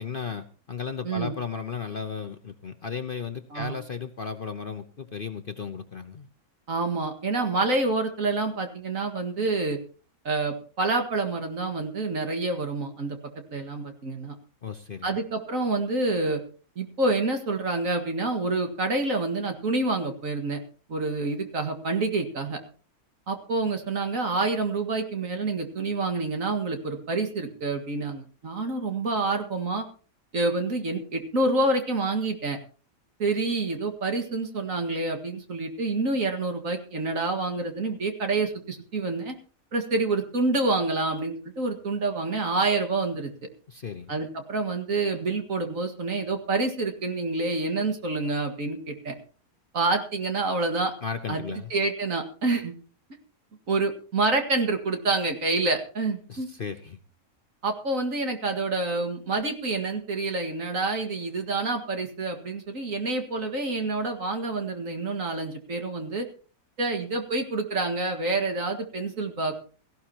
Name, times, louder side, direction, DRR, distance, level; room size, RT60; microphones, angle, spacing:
voice 1, 0.0-6.3 14.6-15.2 43.7-44.1 51.0-51.7 56.3-57.0, left 6 dB, 45° left, 7 dB, 0.8 m, -35 dB
voice 2, 6.7-9.8 10.2-13.2 13.5-14.3 15.0-16.4 16.8-20.6 20.9-22.6 23.3-29.8 30.3-32.6 33.2-39.4 39.7-43.3 44.1-49.1 49.7-50.9 51.3-51.4 51.7-52.7 53.7-56.5 57.6-66.3 66.8-69.7, right 3 dB, 60° right, 4 dB, 2.2 m, -27 dB
17.5 x 15.5 x 2.9 m, 0.39 s
omnidirectional pair, 1.6 m